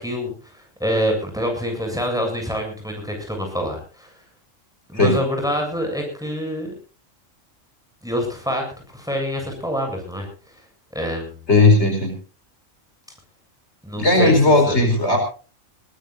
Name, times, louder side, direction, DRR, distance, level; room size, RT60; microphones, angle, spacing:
voice 1, 0.0-4.1 4.9-6.7 8.0-8.6 8.9-10.3 10.9-11.4 13.8-14.4 14.7-14.8, equal, 5° right, 2 dB, 7.5 m, -26 dB
voice 2, 11.5-12.1 14.0-15.2, left 2 dB, 60° left, 4 dB, 4.9 m, -16 dB
21.5 x 20.0 x 2.6 m, 0.37 s
omnidirectional pair, 1.3 m